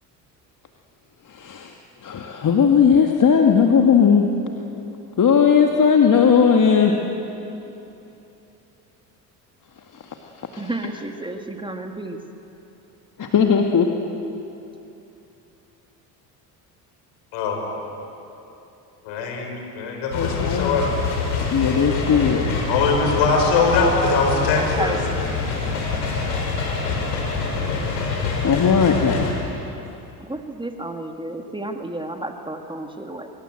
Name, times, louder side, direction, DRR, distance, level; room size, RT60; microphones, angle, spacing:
voice 1, 1.3-1.7 2.0-4.3 5.2-6.9 9.9-10.7 13.2-13.9 20.1-20.9 21.5-22.5 28.4-29.3 29.9-30.0, left 6 dB, 40° left, 2 dB, 2.0 m, -18 dB
voice 2, 10.6-12.2 22.0-22.6 22.9-23.2 24.5-25.0 30.2-33.3, right 2 dB, 10° right, 4 dB, 2.2 m, -32 dB
voice 3, 19.0-21.1 22.7-24.9, left 4 dB, 70° left, 2 dB, 5.7 m, -21 dB
sound 1, 20.1-29.3, left 4 dB, 85° left, 4.5 m, -25 dB
25.0 x 23.5 x 7.8 m, 2.9 s
hypercardioid pair, 60°, 49 cm